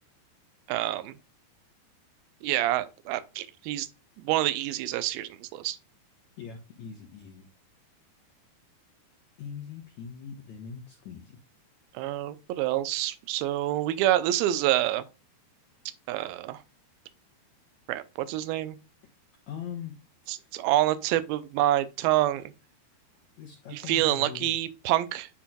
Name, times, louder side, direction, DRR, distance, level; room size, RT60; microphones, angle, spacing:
voice 1, 0.7-1.1 2.4-3.9 4.2-5.8 11.9-15.0 16.1-16.6 17.9-18.8 20.3-22.4 23.7-25.3, right 14 dB, 80° right, 2.3 m, -27 dB
voice 2, 6.4-7.5 9.4-11.4 19.5-19.9 20.4-20.5 23.4-24.6, left 7 dB, 75° left, 1.6 m, -41 dB
10.0 x 4.3 x 2.3 m
omnidirectional pair, 4.7 m